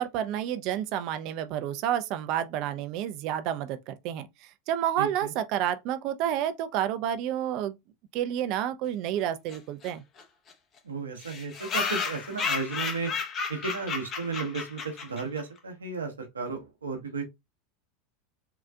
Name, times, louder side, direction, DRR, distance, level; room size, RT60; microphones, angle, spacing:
voice 1, 0.0-4.3 4.7-7.8 8.1-10.0, right 10 dB, 55° right, 0.4 m, -30 dB
voice 2, 5.0-5.3 10.8-13.1 13.5-17.2, right 4 dB, 90° right, 0.9 m, -34 dB
sound 1, 9.5-9.6 9.8-9.9 10.2-10.3 10.5-10.6 11.2-15.4, left 5 dB, 35° left, 0.8 m, -32 dB
3.8 x 2.3 x 2.2 m
hypercardioid pair, 90°, 0 cm